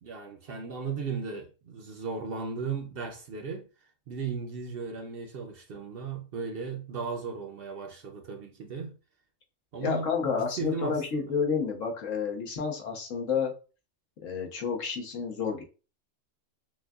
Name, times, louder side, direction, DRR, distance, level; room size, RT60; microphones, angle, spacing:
voice 1, 0.0-3.7 4.1-9.0 9.7-11.3, right 5 dB, 60° right, 0.7 m, -36 dB
voice 2, 9.8-13.5 14.2-15.6, left 6 dB, 75° left, 1.3 m, -30 dB
6.2 x 2.3 x 2.3 m
omnidirectional pair, 1.3 m